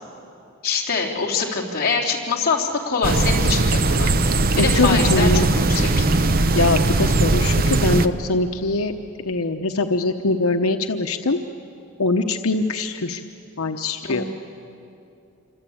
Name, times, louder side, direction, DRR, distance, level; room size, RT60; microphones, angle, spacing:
voice 1, 0.6-4.1 4.6-6.1 14.0-14.2, left 5 dB, 45° left, -2 dB, 3.2 m, -24 dB
sound 1, 3.0-8.1, right 2 dB, 40° right, 0.8 m, -19 dB
voice 2, 4.6-5.5 6.5-8.9 9.3-11.4 12.0-13.2 13.6-14.2, left 2 dB, 85° left, 5 dB, 1.0 m, -22 dB
27.0 x 25.0 x 8.7 m, 2.7 s
head